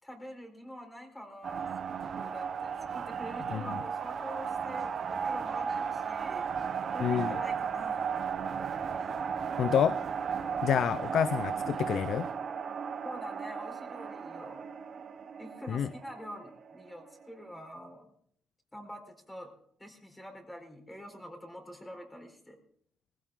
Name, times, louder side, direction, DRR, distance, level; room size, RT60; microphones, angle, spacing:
voice 1, 0.0-6.5 6.9-8.1 13.0-14.6 15.4-18.1 18.7-19.5 19.8-22.6, equal, 10° left, 4 dB, 4.4 m, -46 dB
sound 1, 1.4-17.2, right 6 dB, 55° right, 1.3 m, -35 dB
voice 2, 7.0-7.4 9.6-10.0 10.6-12.3 15.7-15.9, left 9 dB, 70° left, 15 dB, 0.6 m, -28 dB
19.0 x 16.0 x 3.8 m, 0.65 s
cardioid pair, 90°, 0 cm